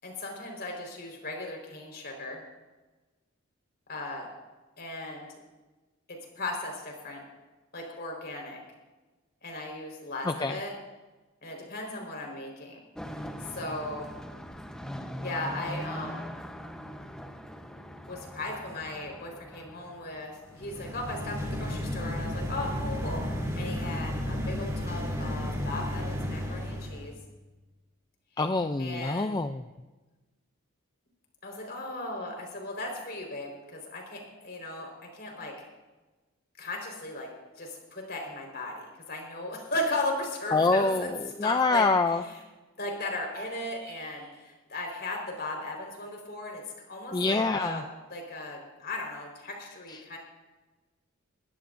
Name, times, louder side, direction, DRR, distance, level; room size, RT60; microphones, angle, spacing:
voice 1, 0.0-2.4 3.9-4.3 4.8-5.3 6.1-7.2 7.7-8.6 9.4-10.7 11.4-12.8 13.4-14.1 15.2-16.3 18.1-23.2 23.5-27.1 28.8-29.4 31.4-35.7 36.6-37.3 37.6-41.1 41.4-41.8 42.2-42.4 42.8-47.8 48.1-50.2, left 2 dB, 50° left, 1 dB, 4.5 m, -37 dB
voice 2, 10.3-10.6 28.4-29.6 40.5-42.2 47.1-47.8 49.9-50.0, left 3 dB, 20° left, 7 dB, 0.4 m, -26 dB
sound 1, 13.0-21.0, equal, 5° left, 0.9 m, -41 dB
sound 2, 20.5-27.1, left 1 dB, 15° right, 3.3 m, -33 dB
sound 3, 43.2-44.4, right 4 dB, 75° right, 5.1 m, -48 dB
22.0 x 16.0 x 2.6 m, 1.2 s
head